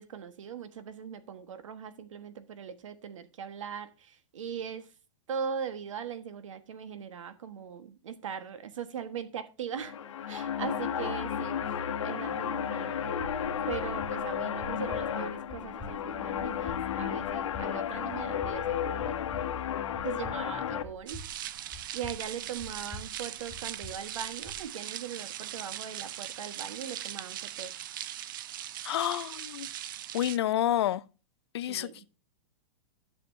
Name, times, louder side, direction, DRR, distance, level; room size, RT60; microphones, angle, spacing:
voice 1, 0.0-4.9 5.3-10.0 10.3-11.6 12.0-13.4 13.7-19.2 20.0-21.2 21.9-27.7 31.7-32.1, right 7 dB, 85° right, 1.4 m, -40 dB
sound 1, 9.7-20.8, left 8 dB, 85° left, 1.2 m, -33 dB
sound 2, 13.7-24.6, left 1 dB, ahead, 1.9 m, -48 dB
sound 3, 21.1-30.4, right 12 dB, 40° right, 0.5 m, -40 dB
voice 2, 28.8-29.7 30.1-31.0 31.5-31.9, left 12 dB, 60° left, 0.5 m, -29 dB
11.5 x 6.9 x 2.6 m
supercardioid pair, 175°, 16 cm